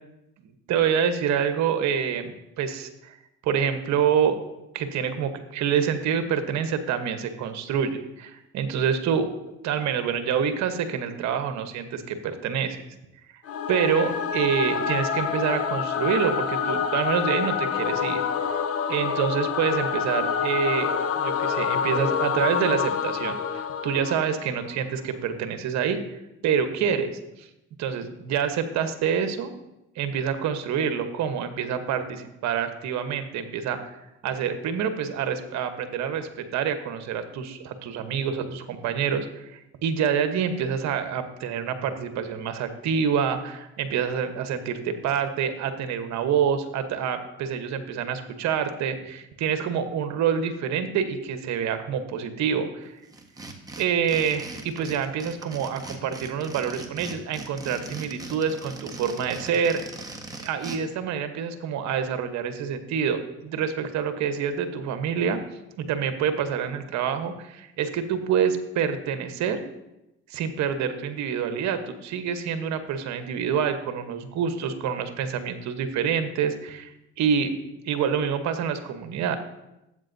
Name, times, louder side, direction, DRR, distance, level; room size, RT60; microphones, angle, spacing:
voice 1, 0.7-3.1 3.4-4.5 4.7-9.3 9.6-12.8 13.7-18.2 18.9-26.0 26.4-27.5 27.8-29.5 30.0-34.0 34.2-52.9 53.8-59.8 60.4-65.4 65.8-69.6 70.3-76.9 77.2-77.5 77.8-79.4, right 7 dB, 65° right, 8 dB, 1.1 m, -27 dB
Singing / Musical instrument, 13.4-24.7, left 7 dB, 50° left, 0.9 m, -27 dB
sound 1, 53.1-60.8, right 2 dB, 10° right, 1.4 m, -40 dB
12.5 x 8.4 x 2.7 m, 0.91 s
supercardioid pair, 85°, 30 cm